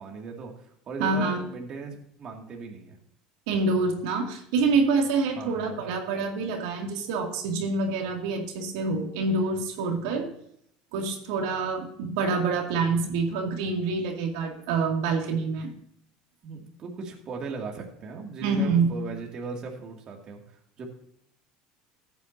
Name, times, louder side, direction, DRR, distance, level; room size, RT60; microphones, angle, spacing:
voice 1, 0.0-3.0 5.4-5.8 16.4-20.9, right 4 dB, 35° right, 1 dB, 2.2 m, -38 dB
voice 2, 1.0-1.4 3.5-10.3 10.9-15.7 18.4-18.9, right 4 dB, 80° right, 2 dB, 2.3 m, -26 dB
14.5 x 9.1 x 2.7 m, 0.71 s
cardioid pair, 135°, 2 cm